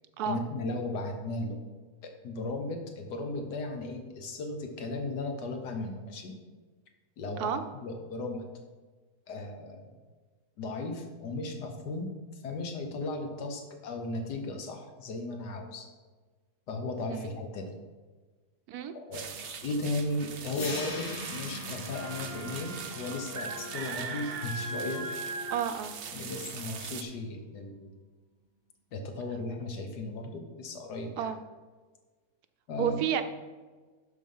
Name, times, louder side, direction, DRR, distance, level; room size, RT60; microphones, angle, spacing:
voice 1, 0.2-1.6 2.0-6.3 7.2-8.4 9.3-9.9 10.6-12.1 12.4-15.9 16.7-17.8 18.9-25.0 26.1-27.9 28.9-31.3 32.7-33.0, left 2 dB, 85° left, 4 dB, 1.7 m, -36 dB
sound 1, 19.1-27.0, right 5 dB, 60° right, 0.6 m, -40 dB
sound 2, 20.5-26.5, left 2 dB, 40° left, 1.1 m, -43 dB
Wind instrument woodwind instrument, 21.9-25.6, left 1 dB, 15° left, 0.8 m, -45 dB
voice 2, 25.5-26.0 31.2-31.4 32.8-33.2, right 8 dB, 75° right, 10 dB, 1.1 m, -30 dB
11.5 x 4.0 x 5.4 m, 1.4 s
omnidirectional pair, 1.7 m